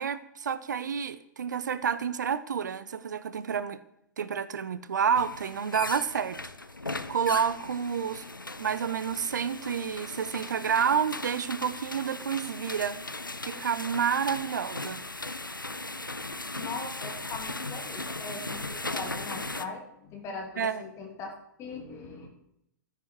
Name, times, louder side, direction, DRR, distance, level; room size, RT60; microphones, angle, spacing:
voice 1, 0.0-3.8 4.2-6.4 6.8-8.2 8.6-13.0 13.4-15.0 20.6-20.8, right 7 dB, 65° right, 0.7 m, -29 dB
sound 1, 5.1-19.7, left 2 dB, 85° left, 0.7 m, -38 dB
voice 2, 16.5-21.3 21.6-22.3, left 4 dB, 30° left, 2.9 m, -40 dB
13.0 x 9.9 x 4.6 m
figure-of-eight pair, 105°, 11 cm